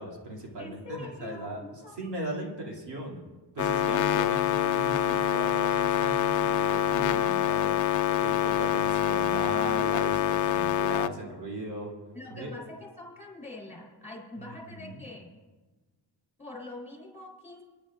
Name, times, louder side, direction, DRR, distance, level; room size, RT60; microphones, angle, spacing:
voice 1, 0.0-3.2 3.5-11.9 12.3-12.5 14.4-15.0, right 1 dB, 80° right, -2 dB, 2.7 m, -38 dB
voice 2, 0.6-2.0 12.1-15.3 16.4-17.6, left 2 dB, 15° left, -2 dB, 3.8 m, -44 dB
sound 1, 3.6-11.1, left 10 dB, 50° left, 0.4 m, -26 dB
26.0 x 10.5 x 2.5 m, 1.3 s
wide cardioid pair, 165°, 42 cm